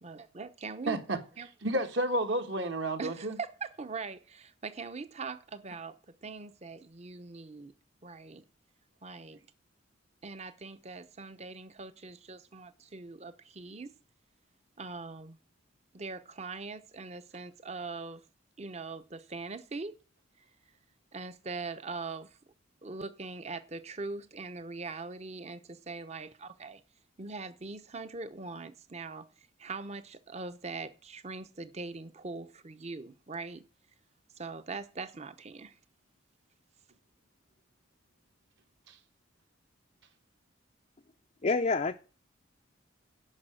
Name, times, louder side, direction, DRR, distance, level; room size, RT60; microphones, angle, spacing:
voice 1, 0.0-1.0 1.4-1.5 3.0-6.0 6.2-7.7 8.0-8.4 9.0-9.4 10.2-13.9 14.8-15.4 15.9-18.2 18.6-20.0 21.1-22.4 22.8-26.8 27.2-29.3 29.6-33.6 34.4-35.8, right 4 dB, 30° right, 0.7 m, -41 dB
voice 2, 0.9-1.2 1.6-3.4 38.9-39.0, right 1 dB, 60° right, 1.4 m, -31 dB
voice 3, 41.4-41.9, left 3 dB, 35° left, 0.5 m, -27 dB
10.5 x 5.8 x 7.6 m
head